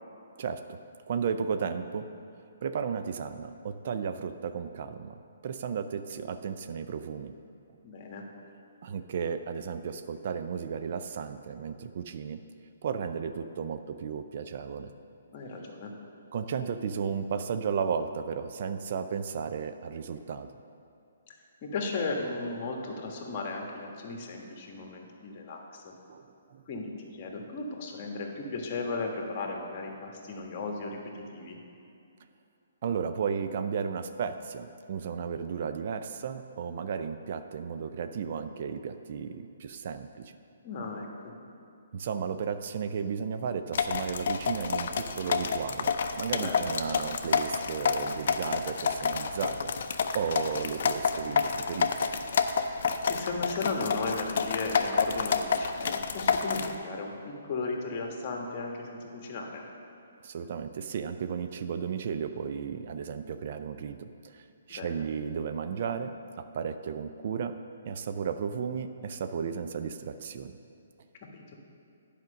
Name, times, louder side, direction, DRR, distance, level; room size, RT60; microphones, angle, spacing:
voice 1, 0.4-0.8 1.1-2.1 2.6-7.3 7.7-7.8 8.8-12.4 12.8-14.9 16.3-20.5 26.1-26.2 26.5-26.6 32.8-40.3 41.9-49.7 50.1-51.9 60.2-67.6 67.9-70.6, right 6 dB, 50° right, 9 dB, 0.4 m, -34 dB
voice 2, 7.8-8.2 15.3-15.9 21.3-21.4 21.6-25.9 26.7-31.6 40.6-41.3 46.4-46.6 53.1-59.7 64.7-65.1 71.3-71.5, left 3 dB, 40° left, 1 dB, 1.3 m, -36 dB
sound 1, 43.7-56.8, left 5 dB, 55° left, 0.5 m, -29 dB
9.5 x 5.1 x 6.3 m, 2.6 s
figure-of-eight pair, 135°, 0 cm